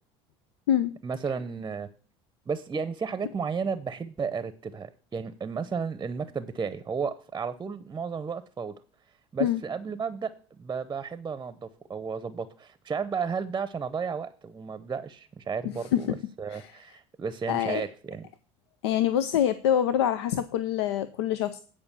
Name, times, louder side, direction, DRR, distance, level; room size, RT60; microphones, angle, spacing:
voice 1, 1.0-1.9 2.5-8.7 9.3-18.3, right 5 dB, 25° right, 14 dB, 0.7 m, -33 dB
voice 2, 15.6-16.0 16.5-16.7 17.5-17.8 18.8-21.6, left 10 dB, 90° left, 13 dB, 0.5 m, -25 dB
9.6 x 4.9 x 7.0 m, 0.41 s
supercardioid pair, 85°, 14 cm